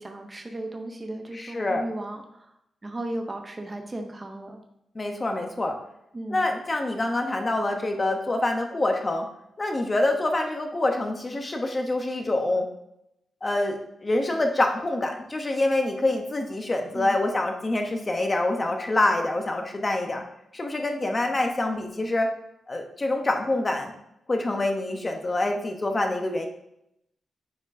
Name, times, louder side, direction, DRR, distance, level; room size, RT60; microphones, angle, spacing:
voice 1, 0.0-2.5 2.8-4.6 6.1-6.4 16.9-17.1, right 1 dB, 20° right, 3 dB, 0.6 m, -35 dB
voice 2, 1.3-1.8 4.9-5.8 6.3-9.2 9.6-12.7 13.4-20.2 20.5-22.3 22.7-23.9 24.3-26.5, left 2 dB, 20° left, 4 dB, 0.8 m, -26 dB
9.2 x 4.3 x 2.6 m, 0.81 s
wide cardioid pair, 170°, 0 cm